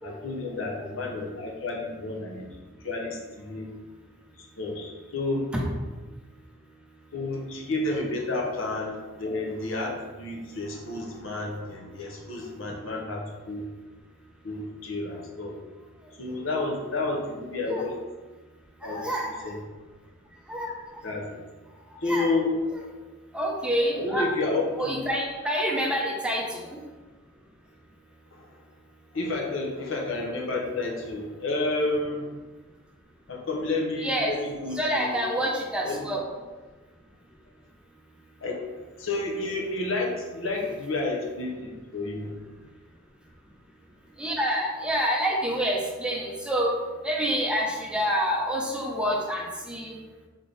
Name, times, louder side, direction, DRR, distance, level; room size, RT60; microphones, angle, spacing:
voice 1, 0.0-2.5 2.8-3.7 4.4-5.5 7.1-13.7 14.4-15.6 16.2-17.9 18.8-19.1 19.4-19.6 21.0-21.4 22.0-22.5 23.9-25.0 28.3-28.4 29.1-32.3 33.3-35.2 35.8-36.0 38.4-38.6 39.0-42.3, left 2 dB, 75° left, -1 dB, 0.9 m, -30 dB
voice 2, 18.8-19.5 20.5-21.0 22.0-22.3 23.3-24.3 24.8-26.8 34.0-34.3 34.7-36.2 44.2-46.7 47.0-50.0, equal, 5° right, -2 dB, 0.6 m, -27 dB
3.6 x 3.5 x 3.9 m, 1.3 s
head